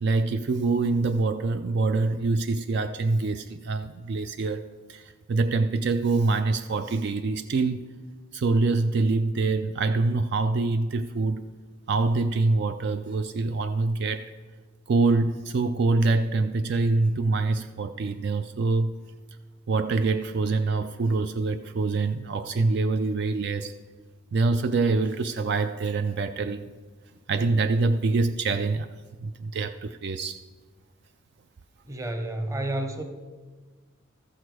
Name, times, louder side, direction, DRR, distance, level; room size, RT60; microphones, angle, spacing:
voice 1, 0.0-7.8 8.3-11.4 11.9-14.4 14.9-18.9 19.7-23.7 24.3-26.6 27.3-28.9 29.2-30.4, right 3 dB, 55° right, 0.4 m, -25 dB
voice 2, 31.9-33.0, right 1 dB, 15° right, 0.8 m, -30 dB
14.0 x 6.4 x 4.8 m
head